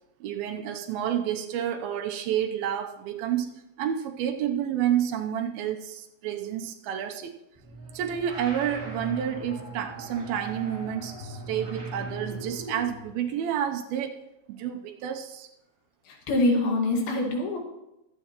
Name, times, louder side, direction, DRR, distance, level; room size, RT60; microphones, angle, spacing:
voice 1, 0.2-3.5 3.8-7.3 7.9-14.2 14.5-15.5, right 9 dB, 80° right, 2.5 m, -29 dB
sound 1, 7.5-13.1, right 1 dB, 30° right, 1.7 m, -39 dB
voice 2, 16.1-17.6, left 2 dB, 75° left, 3.6 m, -24 dB
22.0 x 8.3 x 3.0 m
omnidirectional pair, 4.4 m